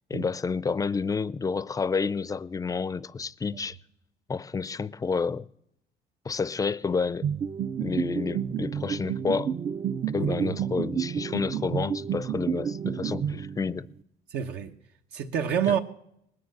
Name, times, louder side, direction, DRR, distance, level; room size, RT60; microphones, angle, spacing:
voice 1, 0.1-3.8 4.3-5.5 6.2-7.3 7.8-9.5 10.1-13.9 15.7-15.8, left 5 dB, 20° left, 0.5 m, -29 dB
sound 1, 7.2-13.9, right 8 dB, 35° right, 0.5 m, -30 dB
voice 2, 10.2-10.6 14.3-14.7 15.1-15.8, right 8 dB, 75° right, 1.0 m, -28 dB
19.5 x 9.6 x 6.6 m
cardioid pair, 110°, 17 cm